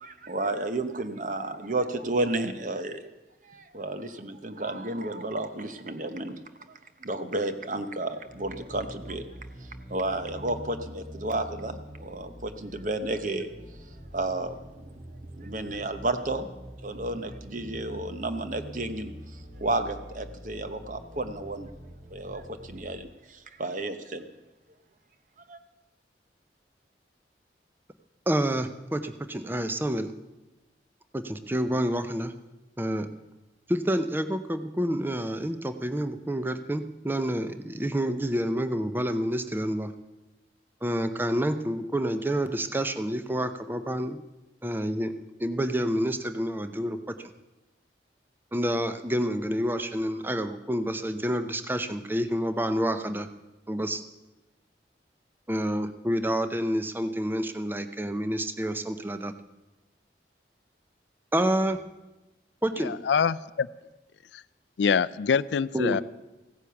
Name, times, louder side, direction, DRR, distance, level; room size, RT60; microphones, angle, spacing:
voice 1, 0.0-3.0 3.4-6.4 7.0-9.2 9.9-13.5 14.1-14.8 15.4-16.5 16.8-19.1 19.6-21.7 22.1-24.2 25.5-25.6, right 2 dB, 45° right, 9 dB, 1.0 m, -32 dB
sound 1, 8.2-22.9, equal, 65° right, 6.9 m, -45 dB
voice 2, 28.3-30.1 31.1-32.3 32.8-33.1 33.7-39.9 40.8-44.2 44.6-45.1 45.4-47.1 48.5-53.3 53.7-54.0 55.5-59.3 61.3-61.8 62.6-62.9 65.7-66.0, equal, 10° right, 10 dB, 0.6 m, -28 dB
voice 3, 62.8-63.7 64.3-64.4 64.8-66.0, left 6 dB, 80° left, 17 dB, 0.4 m, -25 dB
15.5 x 9.8 x 7.0 m, 1.1 s
head